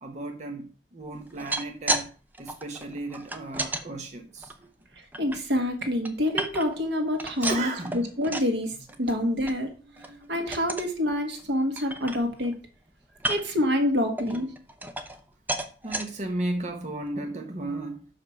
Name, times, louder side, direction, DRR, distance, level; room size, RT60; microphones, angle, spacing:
voice 1, 0.0-2.1 2.4-4.7 7.4-8.1 10.0-10.4 15.8-18.0, right 2 dB, 40° right, 0.8 m, -34 dB
sound 1, 1.2-2.1 2.3-3.8 4.4-5.4 5.8-6.8 7.1-8.6 8.9-9.2 9.5-9.6 10.0-10.2 10.5-10.9 11.4-11.5 11.8-12.6 13.2-13.6 14.2-15.2 15.5-16.1 16.7-16.8 17.1-17.2, right 1 dB, 10° right, 0.7 m, -32 dB
voice 2, 5.2-9.7 10.3-12.5 13.3-14.5, left 1 dB, 80° right, 1.5 m, -27 dB
6.0 x 5.0 x 5.8 m
head